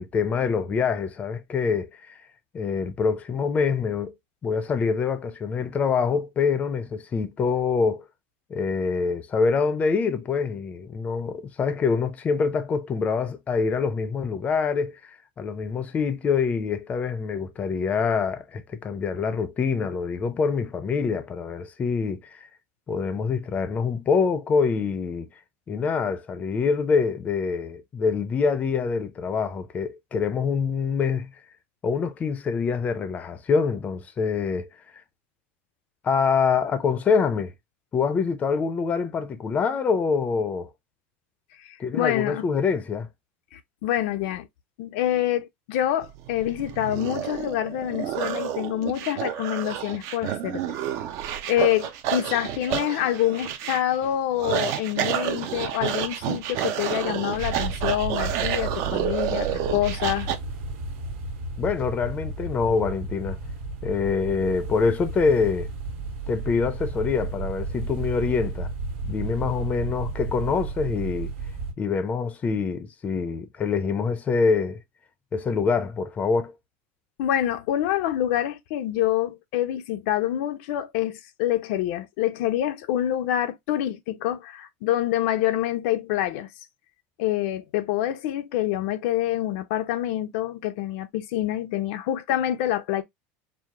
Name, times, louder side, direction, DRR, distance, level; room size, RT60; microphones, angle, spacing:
voice 1, 0.0-2.1 2.5-4.1 4.4-8.1 8.5-22.5 22.9-25.3 25.7-31.4 31.8-34.7 36.0-37.5 37.9-40.7 41.8-43.1 61.6-63.4 63.8-65.7 66.3-68.7 69.0-71.3 71.8-74.8 75.3-76.5, left 5 dB, 20° left, 0.5 m, -25 dB
voice 2, 41.6-42.4 43.5-44.5 44.8-50.6 51.5-60.3 77.2-86.5 87.2-93.0, left 12 dB, 70° left, 0.5 m, -26 dB
sound 1, 46.0-60.4, right 10 dB, 50° right, 0.7 m, -30 dB
sound 2, 57.3-71.7, right 3 dB, 80° right, 1.3 m, -33 dB
4.7 x 2.0 x 3.5 m
supercardioid pair, 150°, 7 cm